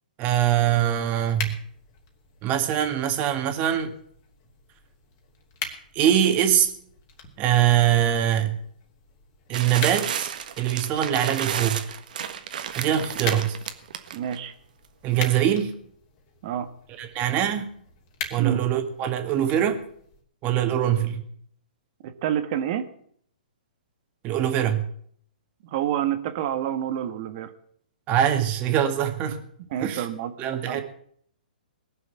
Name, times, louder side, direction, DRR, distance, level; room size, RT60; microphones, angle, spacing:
voice 1, 0.2-1.6 2.4-3.9 5.9-6.7 7.4-8.6 9.5-10.3 10.6-12.0 12.8-13.6 15.0-15.7 17.0-17.7 18.3-19.8 20.4-21.2 24.2-24.9 28.1-29.4 29.8-30.1 30.4-30.8, right 10 dB, 30° right, 7 dB, 2.0 m, -23 dB
sound 1, 1.2-20.2, left 6 dB, 35° left, 3.0 m, -42 dB
sound 2, 9.5-14.4 15.2-15.4, right 8 dB, 60° right, 1.5 m, -32 dB
voice 2, 14.1-14.5 16.4-16.7 18.4-18.6 22.0-22.9 25.6-27.5 29.7-30.8, right 10 dB, 45° right, 10 dB, 1.6 m, -28 dB
20.0 x 7.0 x 8.2 m, 0.63 s
hypercardioid pair, 130°, 5 cm